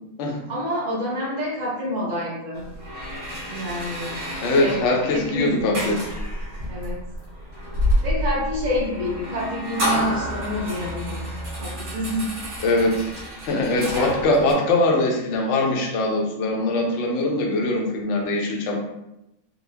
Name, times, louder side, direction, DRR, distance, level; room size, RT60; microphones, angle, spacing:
voice 1, 0.5-2.6 3.5-4.8 5.1-5.9 6.6-7.0 8.0-11.3 11.6-12.3, left 1 dB, 35° right, -6 dB, 0.8 m, -28 dB
sound 1, 2.5-14.5, equal, 80° right, 1.8 m, -29 dB
voice 2, 4.4-6.0 12.6-13.1 13.5-18.8, left 2 dB, 65° left, 0 dB, 0.9 m, -22 dB
4.0 x 2.0 x 2.7 m, 0.89 s
omnidirectional pair, 1.5 m